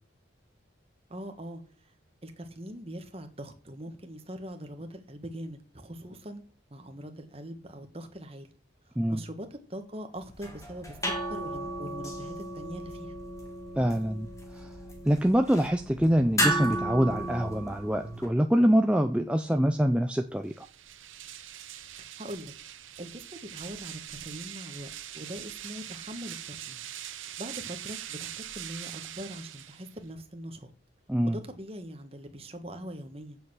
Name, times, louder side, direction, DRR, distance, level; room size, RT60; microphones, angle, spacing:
voice 1, 1.1-1.6 2.2-6.4 6.7-8.5 8.9-13.2 19.5-19.7 22.0-22.5 23.0-26.9 27.4-30.7 31.2-33.4, equal, 30° right, 6 dB, 1.5 m, -42 dB
sound 1, 10.2-18.3, right 1 dB, 15° left, 2.2 m, -34 dB
voice 2, 13.8-14.3 14.5-14.7 15.0-20.7 31.1-31.4, equal, 5° right, 5 dB, 0.5 m, -25 dB
sound 2, 20.4-30.1, right 11 dB, 85° right, 0.9 m, -42 dB
7.8 x 6.7 x 7.9 m, 0.39 s
head